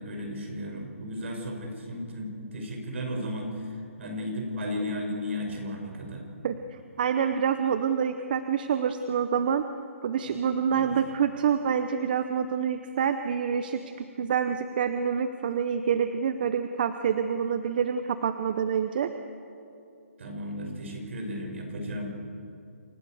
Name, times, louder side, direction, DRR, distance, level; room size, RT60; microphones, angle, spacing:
voice 1, 0.0-6.3 10.2-10.4 10.7-11.0 20.2-22.2, left 1 dB, 60° right, 2 dB, 6.1 m, -34 dB
voice 2, 6.4-9.6 10.0-19.1, right 7 dB, 40° right, 9 dB, 0.8 m, -27 dB
28.0 x 15.5 x 7.9 m, 2.6 s
hypercardioid pair, 165°, 8 cm